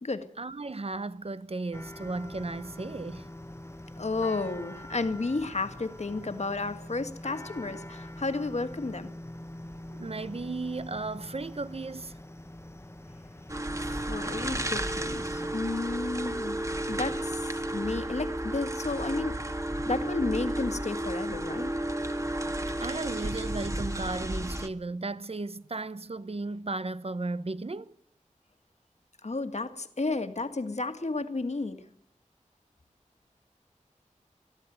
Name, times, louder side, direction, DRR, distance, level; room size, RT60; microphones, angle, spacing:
voice 1, 0.4-3.3 9.9-12.2 22.8-27.9, right 3 dB, 50° right, 1.0 m, -35 dB
sound 1, 1.7-15.5, left 1 dB, 20° left, 1.3 m, -44 dB
voice 2, 4.0-9.1 13.8-19.4 19.9-21.7 29.2-31.8, left 3 dB, 55° left, 1.9 m, -32 dB
sound 2, 13.5-24.7, right 1 dB, 25° right, 1.9 m, -32 dB
21.5 x 14.0 x 9.4 m
wide cardioid pair, 65°, 13 cm